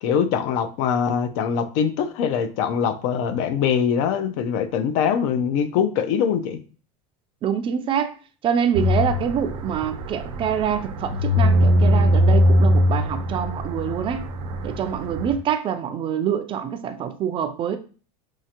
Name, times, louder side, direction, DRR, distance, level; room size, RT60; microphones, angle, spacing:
voice 1, 0.0-6.6, left 7 dB, 60° left, 0.5 m, -23 dB
voice 2, 7.4-8.1 8.4-14.2 14.6-17.8, right 8 dB, 30° right, 0.3 m, -25 dB
sound 1, 8.7-15.3, equal, 85° right, 0.8 m, -20 dB
4.6 x 2.4 x 2.8 m
supercardioid pair, 135°, 19 cm